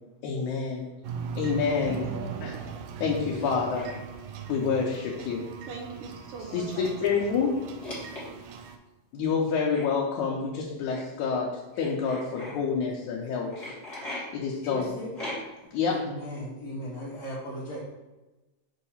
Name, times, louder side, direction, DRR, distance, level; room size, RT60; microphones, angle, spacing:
voice 1, 0.2-0.9 1.4-2.1 2.4-2.5 3.0-3.9 4.5-5.4 6.5-7.5 9.1-11.5 11.8-13.7 14.3-14.9 15.7-16.0, left 5 dB, 85° left, -2 dB, 2.1 m, -28 dB
sound 1, 1.0-8.8, right 6 dB, 85° right, 2.0 m, -39 dB
voice 2, 1.8-2.6 5.7-7.6, right 4 dB, 70° right, 0 dB, 1.4 m, -41 dB
sound 2, 3.7-4.0 5.1-5.3 5.6-5.7 6.5-7.3 7.8-8.6 9.7-9.9 10.9-11.0 11.7-12.5 13.5-14.2 15.1-15.7, left 1 dB, 30° left, 1.4 m, -39 dB
voice 3, 14.6-15.1 15.9-17.8, equal, 70° left, -6 dB, 2.0 m, -37 dB
6.1 x 2.8 x 5.6 m, 1.1 s
omnidirectional pair, 3.3 m